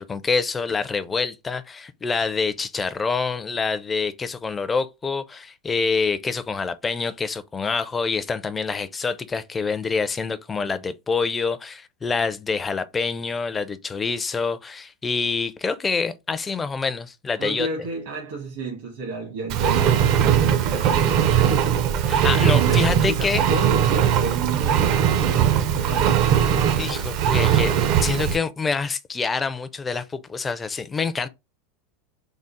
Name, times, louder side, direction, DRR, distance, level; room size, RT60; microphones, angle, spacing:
voice 1, 0.0-17.7 22.2-23.4 26.7-31.3, left 4 dB, 15° left, 0.4 m, -26 dB
voice 2, 17.4-26.3, right 3 dB, 70° right, 1.4 m, -32 dB
Engine, 19.5-28.4, right 9 dB, 45° right, 0.5 m, -20 dB
3.7 x 2.0 x 4.0 m
supercardioid pair, 145°, 0 cm